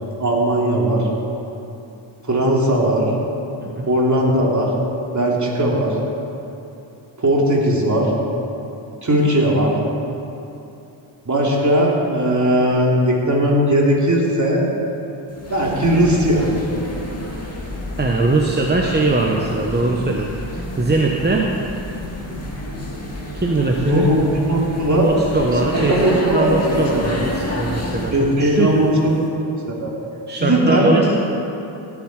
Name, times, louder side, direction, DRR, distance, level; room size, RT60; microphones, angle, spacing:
voice 1, 0.2-1.1 2.2-3.1 3.9-4.7 5.1-5.9 7.2-8.1 9.0-9.7 11.2-14.7 15.5-16.5 23.7-25.1 25.5-27.1 28.1-29.1 29.7-29.9 30.4-31.0, right 1 dB, 35° right, -3 dB, 3.1 m, -18 dB
sound 1, 15.3-28.3, left 1 dB, 30° left, 2.2 m, -29 dB
voice 2, 18.0-21.5 23.3-24.1 24.9-26.0 26.3-28.7 30.3-31.1, right 3 dB, 20° right, -1 dB, 1.1 m, -21 dB
18.0 x 7.4 x 4.9 m, 2.8 s
cardioid pair, 60°, 49 cm